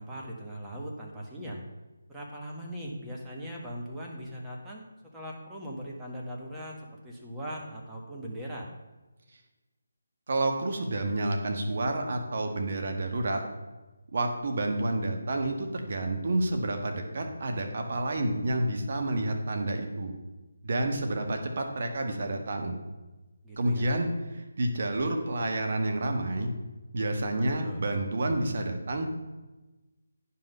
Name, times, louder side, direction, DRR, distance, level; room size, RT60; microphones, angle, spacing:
voice 1, 0.0-1.6 2.1-4.8 5.1-8.7 23.4-24.0 27.3-27.8, equal, 10° right, -3 dB, 1.4 m, -40 dB
voice 2, 10.3-13.4 14.1-20.1 20.6-22.8 23.6-24.1 24.6-26.5 26.9-29.0, right 1 dB, 55° right, 4 dB, 1.5 m, -29 dB
9.8 x 5.8 x 5.5 m, 1.1 s
figure-of-eight pair, 160°, 0 cm